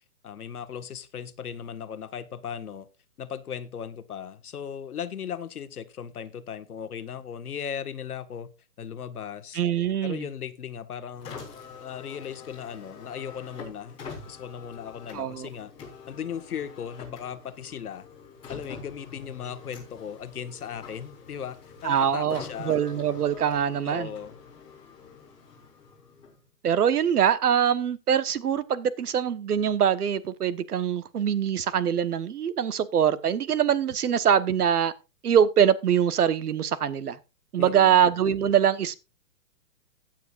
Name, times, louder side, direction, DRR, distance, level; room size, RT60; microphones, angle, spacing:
voice 1, 0.2-2.9 3.2-8.5 8.8-9.6 10.0-11.5 11.8-14.0 14.3-15.7 16.1-18.1 18.5-21.6 21.8-22.8 23.8-24.4 37.6-38.0, left 8 dB, 70° left, 1.5 m, -37 dB
voice 2, 9.5-10.2 15.1-15.5 21.8-24.1 26.6-34.9 35.2-37.2 37.5-38.9, right 9 dB, 70° right, 1.3 m, -23 dB
Car, 11.1-26.5, left 5 dB, 10° left, 3.8 m, -45 dB
16.5 x 9.2 x 2.5 m
hypercardioid pair, 175°, 46 cm